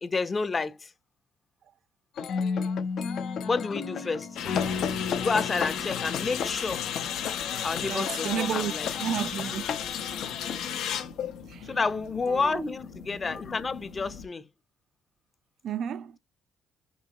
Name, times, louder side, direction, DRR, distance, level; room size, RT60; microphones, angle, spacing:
voice 1, 0.0-0.9 3.4-4.4 5.1-6.9 7.6-8.9 11.6-14.4, left 4 dB, 35° left, 0.7 m, -30 dB
sound 1, 2.2-10.6, left 8 dB, 70° left, 0.7 m, -36 dB
sound 2, 2.3-7.4, left 5 dB, 50° left, 1.1 m, -34 dB
sound 3, 4.4-14.3, left 8 dB, 85° left, 1.0 m, -35 dB
voice 2, 7.8-8.7 9.0-9.7 11.5-11.7 12.3-12.6 15.6-16.2, right 9 dB, 70° right, 0.4 m, -32 dB
5.4 x 3.1 x 2.9 m
cardioid pair, 90°, 0 cm